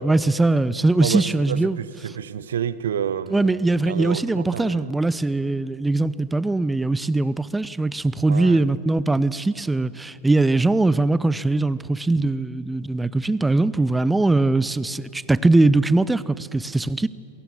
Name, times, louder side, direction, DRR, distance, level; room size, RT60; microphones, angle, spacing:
voice 1, 0.0-1.8 3.3-17.1, right 2 dB, 5° right, 0.7 m, -21 dB
voice 2, 1.0-4.9 8.3-8.6, right 9 dB, 65° right, 0.8 m, -29 dB
28.5 x 22.5 x 7.2 m
figure-of-eight pair, 90°, 0 cm